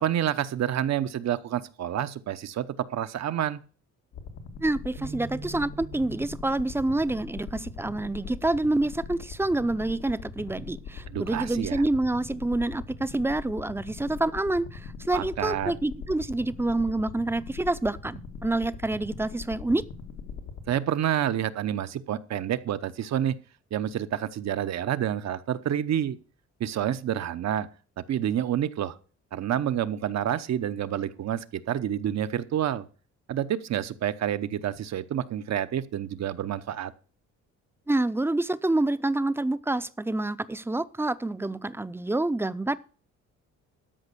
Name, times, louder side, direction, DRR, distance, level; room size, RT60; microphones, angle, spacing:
voice 1, 0.0-2.7 2.9-3.6 11.1-11.8 15.1-15.7 20.7-23.4 23.7-26.2 26.6-27.7 28.0-29.0 29.3-32.9 33.3-36.9, right 10 dB, 60° right, 0.9 m, -28 dB
sound 1, 4.1-20.7, left 5 dB, 90° left, 1.9 m, -41 dB
voice 2, 4.6-19.8 37.9-42.8, right 2 dB, 10° right, 0.6 m, -27 dB
sound 2, 5.0-9.2 9.7-9.9 10.8-11.2, right 7 dB, 80° right, 3.6 m, -47 dB
13.0 x 5.3 x 6.8 m
cardioid pair, 90°, 30 cm